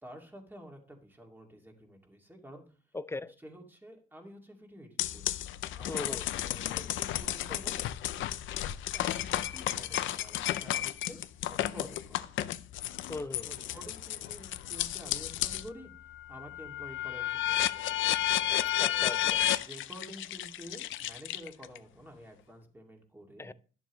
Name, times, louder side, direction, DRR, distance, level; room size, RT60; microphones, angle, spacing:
voice 1, 0.0-2.6 3.4-5.3 5.7-7.8 8.9-11.2 11.5-12.3 13.5-15.9 16.3-18.0 19.6-23.5, equal, 10° right, 2.3 m, -49 dB
voice 2, 2.9-3.3 5.9-6.2 13.1-13.5 18.8-19.4 23.4-23.5, left 2 dB, 15° left, 0.4 m, -38 dB
sound 1, 5.0-15.7 16.1-21.8, left 12 dB, 80° left, 0.6 m, -32 dB
11.0 x 7.2 x 3.1 m
cardioid pair, 90°, 20 cm